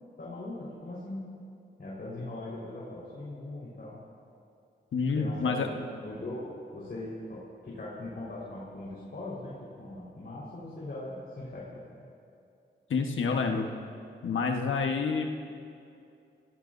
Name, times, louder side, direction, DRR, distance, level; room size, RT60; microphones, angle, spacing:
voice 1, 0.2-1.2 1.8-4.0 5.1-12.0, left 2 dB, 55° left, -7 dB, 4.4 m, -40 dB
voice 2, 4.9-5.7 12.9-13.7 14.2-15.3, left 5 dB, 85° left, 3 dB, 1.2 m, -28 dB
29.0 x 17.5 x 2.6 m, 2.5 s
cardioid pair, 55°, 20 cm